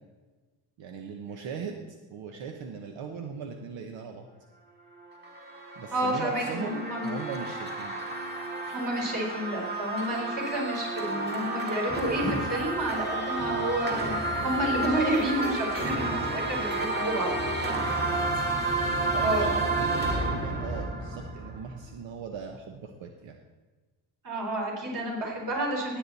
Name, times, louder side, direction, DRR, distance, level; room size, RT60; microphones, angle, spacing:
voice 1, 0.8-1.8 2.1-4.3 5.7-8.0 17.9-18.4 19.1-23.4, right 6 dB, 80° right, 4 dB, 1.2 m, -39 dB
sound 1, 5.0-22.0, right 2 dB, 20° right, 1.7 m, -31 dB
voice 2, 5.9-7.2 8.7-17.3 17.6-17.7 19.2-19.5 24.2-26.0, right 1 dB, 45° right, -2 dB, 4.2 m, -30 dB
17.0 x 8.8 x 4.2 m, 1.3 s
cardioid pair, 150°, 45 cm